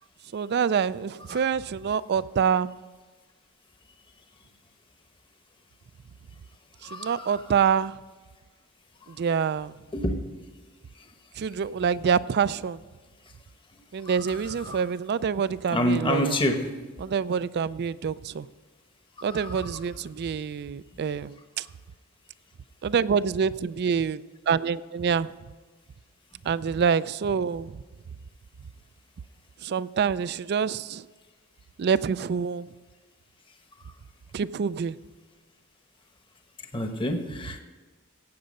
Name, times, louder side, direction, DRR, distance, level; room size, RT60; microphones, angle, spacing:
voice 1, 0.3-2.7 6.9-7.9 9.2-9.7 11.4-12.8 13.9-16.3 17.0-18.5 19.2-21.6 22.8-24.2 24.5-25.3 26.5-27.7 29.6-31.0 31.8-32.7 34.3-34.9, right 6 dB, 50° right, 17 dB, 0.3 m, -26 dB
voice 2, 6.8-7.4 9.0-9.2 9.9-10.2 10.9-11.1 13.7-14.8 15.7-16.8 19.2-19.8 33.8-33.9 36.7-37.6, left 1 dB, 25° left, 6 dB, 1.0 m, -29 dB
16.5 x 7.9 x 5.3 m, 1.3 s
head